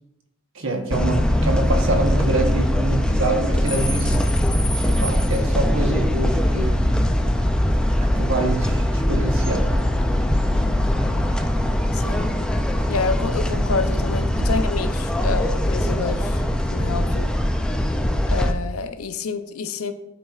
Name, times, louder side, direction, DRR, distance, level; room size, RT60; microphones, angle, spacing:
voice 1, 0.5-4.2 4.8-7.0 8.1-9.7, right 2 dB, 65° right, 3 dB, 1.1 m, -25 dB
sound 1, 0.9-18.5, left 1 dB, 5° left, 0.3 m, -21 dB
voice 2, 11.9-12.4 12.9-16.4 16.7-17.3 18.3-19.9, left 4 dB, 75° left, 9 dB, 0.5 m, -28 dB
12.5 x 4.3 x 2.4 m, 0.99 s
head